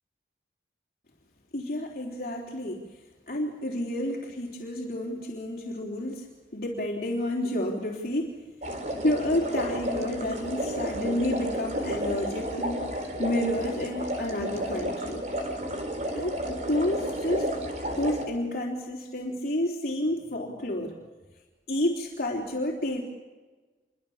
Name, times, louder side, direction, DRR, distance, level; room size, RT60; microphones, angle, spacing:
voice 1, 1.5-2.8 3.3-8.3 9.0-15.2 16.1-17.5 17.9-20.9 21.7-23.0, left 1 dB, 50° left, -2 dB, 3.6 m, -30 dB
sound 1, 8.6-18.3, equal, 40° right, 4.3 m, -32 dB
27.5 x 24.0 x 7.3 m, 1.3 s
head